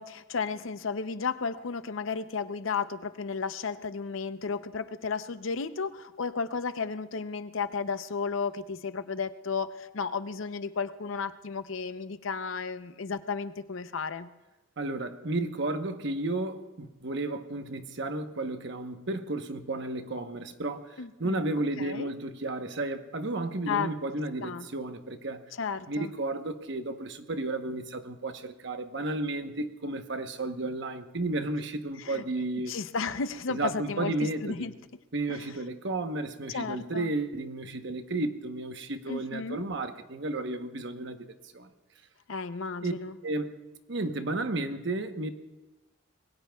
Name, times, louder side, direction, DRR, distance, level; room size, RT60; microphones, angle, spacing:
voice 1, 0.0-14.3 21.0-21.4 21.8-22.1 23.7-23.9 24.4-24.7 25.6-26.1 32.0-32.2 32.7-34.7 35.3-35.4 36.5-37.1 39.1-39.6 42.3-43.2, left 5 dB, 70° left, 0.6 m, -33 dB
voice 2, 14.8-25.5 25.9-32.7 33.5-34.7 35.1-41.2 41.4-41.7 42.8-42.9 43.2-43.5 43.9-45.3, right 2 dB, 60° right, 1.0 m, -33 dB
26.0 x 21.0 x 2.3 m
head